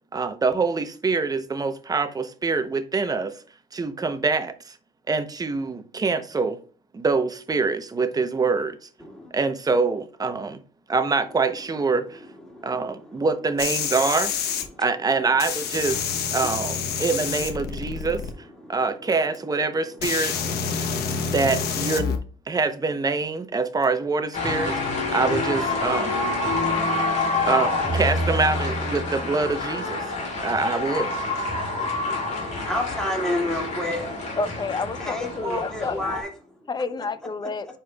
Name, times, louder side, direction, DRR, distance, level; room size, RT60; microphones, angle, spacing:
voice 1, 0.1-3.3 3.7-4.8 5.1-6.6 6.9-8.9 9.3-10.6 10.9-12.2 12.6-14.3 14.8-16.0 16.3-18.2 18.7-20.3 21.1-22.2 22.5-24.7 25.1-26.2 27.5-30.0 30.4-31.1, right 4 dB, 20° right, 0.7 m, -25 dB
voice 2, 9.0-9.3 12.5-13.3 14.7-14.8 16.9-17.0 17.6-18.1 18.6-19.1 20.7-21.2 31.8-34.4 35.0-36.3, left 1 dB, 5° left, 2.3 m, -32 dB
sound 1, 13.6-14.6 15.4-18.3 19.3-19.4 20.0-22.2 23.8-23.9, left 6 dB, 70° left, 0.9 m, -28 dB
sound 2, 24.3-36.2, left 2 dB, 45° left, 2.7 m, -27 dB
voice 3, 34.4-36.2 36.7-37.7, left 4 dB, 25° left, 0.6 m, -30 dB
9.8 x 4.3 x 2.3 m
cardioid pair, 110°, 17 cm